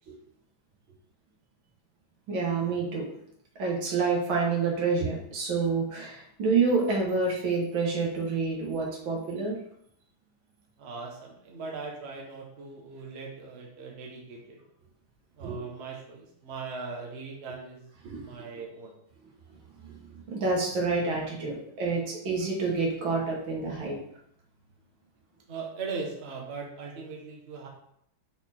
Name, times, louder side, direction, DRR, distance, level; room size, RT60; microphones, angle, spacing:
voice 1, 2.3-3.1 3.6-9.6 15.4-15.6 18.0-18.5 19.8-24.0, right 4 dB, 70° right, -2 dB, 2.2 m, -28 dB
voice 2, 10.8-14.6 15.4-19.0 25.5-27.7, right 4 dB, 40° right, -1 dB, 1.1 m, -39 dB
5.8 x 4.3 x 4.3 m, 0.71 s
omnidirectional pair, 2.3 m